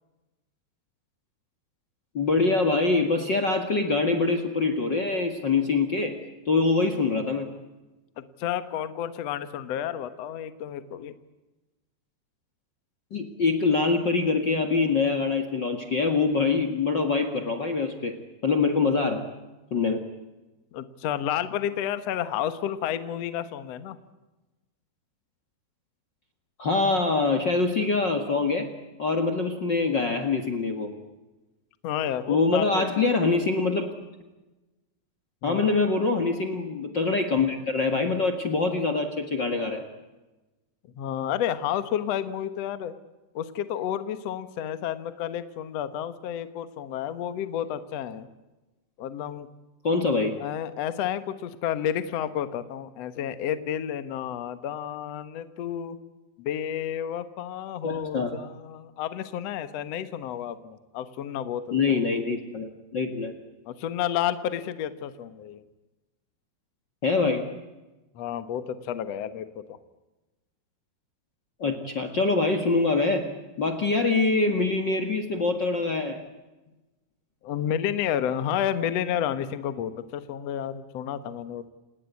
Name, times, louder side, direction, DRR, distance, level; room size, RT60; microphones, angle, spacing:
voice 1, 2.1-6.2 6.4-7.5 13.1-18.2 18.4-19.2 19.7-20.1 26.6-28.7 29.0-30.9 32.3-33.9 35.4-39.8 49.8-50.3 57.8-58.4 61.7-63.3 67.0-67.5 71.6-73.3 73.6-76.2, left 3 dB, 55° left, 8 dB, 1.2 m, -24 dB
voice 2, 8.2-11.1 20.7-24.0 31.8-32.9 35.4-35.8 40.9-42.9 43.3-48.3 49.0-49.5 50.4-56.0 56.4-61.6 61.9-62.0 63.7-65.6 68.1-69.8 77.4-81.7, left 10 dB, 75° left, 12 dB, 1.5 m, -31 dB
28.5 x 19.5 x 8.4 m, 1.1 s
omnidirectional pair, 5.0 m